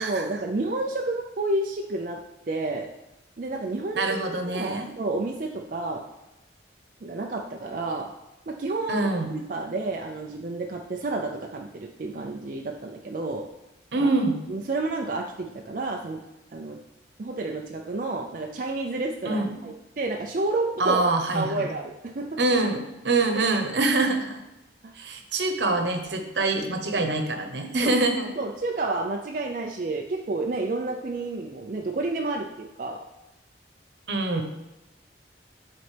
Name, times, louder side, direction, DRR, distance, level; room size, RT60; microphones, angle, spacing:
voice 1, 0.0-2.2 2.5-2.9 3.4-6.0 7.0-8.1 8.5-13.5 14.0-14.1 14.5-16.2 16.5-16.8 17.2-21.0 21.3-22.4 24.8-24.9 27.8-27.9 28.4-33.0, right 2 dB, 45° right, 1 dB, 0.4 m, -30 dB
voice 2, 3.9-4.9 8.9-9.3 13.9-14.4 19.3-19.5 20.8-21.7 22.4-24.4 24.9-28.3 34.1-34.4, right 2 dB, 75° right, 5 dB, 1.0 m, -25 dB
12.0 x 4.1 x 3.4 m, 0.97 s
head